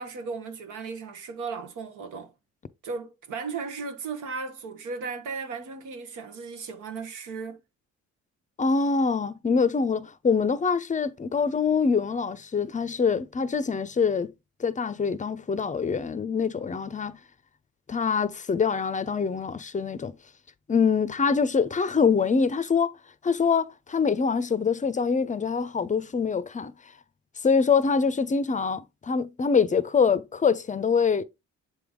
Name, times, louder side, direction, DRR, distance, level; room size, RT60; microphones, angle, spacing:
voice 1, 0.0-2.3 2.8-7.6, right 4 dB, 85° right, 1.1 m, -36 dB
voice 2, 8.6-14.3 14.6-17.2 17.9-20.1 20.7-22.9 23.2-26.7 27.4-31.2, left 5 dB, 25° left, 0.5 m, -24 dB
7.7 x 3.4 x 3.7 m
cardioid pair, 90°, 30 cm